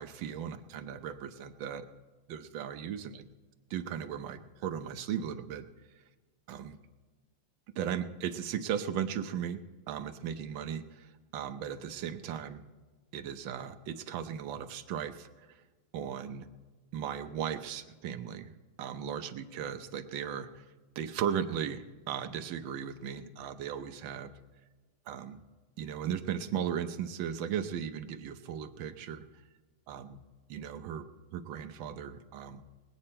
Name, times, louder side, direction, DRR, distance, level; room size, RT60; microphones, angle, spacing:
voice 1, 0.0-1.9 2.3-3.3 3.7-5.7 6.5-6.8 7.7-9.6 9.9-12.6 13.1-15.6 15.9-16.5 16.9-18.5 18.8-20.7 21.0-24.3 25.1-25.4 25.8-29.2 29.9-30.2 30.5-31.1 31.3-32.6, right 8 dB, 75° right, 8 dB, 1.5 m, -37 dB
21.0 x 8.9 x 4.3 m, 1.3 s
omnidirectional pair, 2.2 m